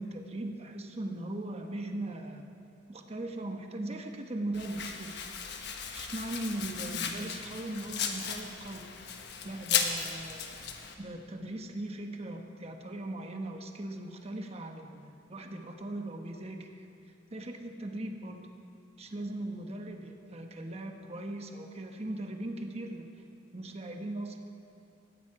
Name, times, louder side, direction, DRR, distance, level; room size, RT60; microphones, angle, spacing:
voice 1, 0.0-2.4 2.9-5.1 5.9-10.5 11.0-16.8 17.3-18.4 19.0-23.1 23.5-24.4, right 1 dB, 35° right, 4 dB, 1.1 m, -39 dB
Domestic sounds home sounds, 4.5-10.9, left 7 dB, 60° left, 1.2 m, -36 dB
17.5 x 14.5 x 4.9 m, 2.6 s
head